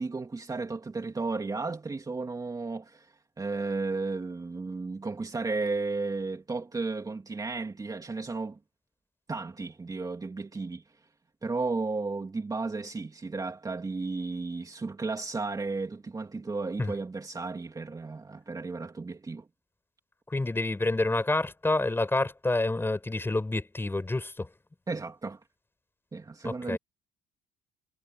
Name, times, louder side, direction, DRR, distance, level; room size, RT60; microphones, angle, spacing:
voice 1, 0.0-8.6 9.3-10.8 11.4-19.5 24.9-25.4 26.1-26.8, right 3 dB, 20° right, 2.9 m, -34 dB
voice 2, 20.3-24.5 26.4-26.8, left 2 dB, 15° left, 6.5 m, -28 dB
cardioid pair, 110°, 17 cm